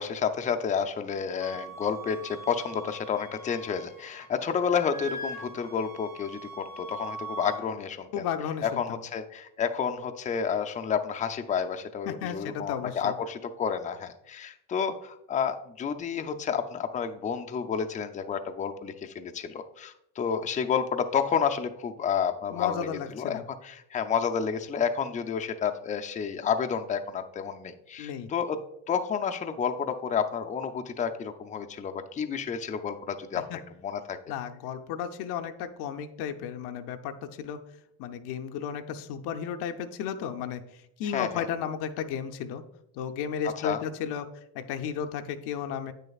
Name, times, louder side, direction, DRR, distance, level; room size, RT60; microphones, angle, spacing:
voice 1, 0.0-8.2 8.6-22.9 23.1-34.2 41.1-41.5 43.6-43.8, left 7 dB, 20° left, 6 dB, 0.4 m, -30 dB
Wind instrument woodwind instrument, 1.4-4.3 4.6-7.6, right 2 dB, 45° right, 2.1 m, -42 dB
voice 2, 8.1-9.0 12.1-13.1 22.5-23.4 28.0-28.3 33.5-33.6 34.3-37.6 38.0-40.6 41.0-42.6 42.9-44.3 44.5-45.9, left 8 dB, 80° left, 7 dB, 0.6 m, -33 dB
8.3 x 6.5 x 2.3 m, 0.81 s
cardioid pair, 115°, 37 cm